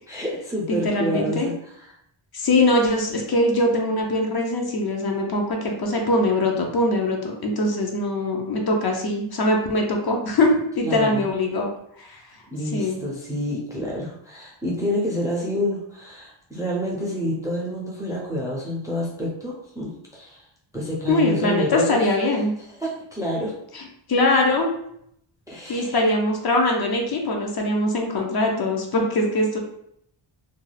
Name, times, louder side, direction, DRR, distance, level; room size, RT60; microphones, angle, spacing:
voice 1, 0.1-1.5 10.8-11.3 12.5-20.4 20.7-22.3 22.7-23.5 25.5-26.0, equal, 10° right, -4 dB, 0.4 m, -28 dB
voice 2, 0.8-1.5 2.3-11.7 12.0-12.2 12.7-13.0 21.1-22.5 23.7-23.8 24.1-24.7 25.7-29.6, left 1 dB, 50° left, 1 dB, 0.5 m, -22 dB
2.3 x 2.3 x 3.2 m, 0.72 s
wide cardioid pair, 170°, 49 cm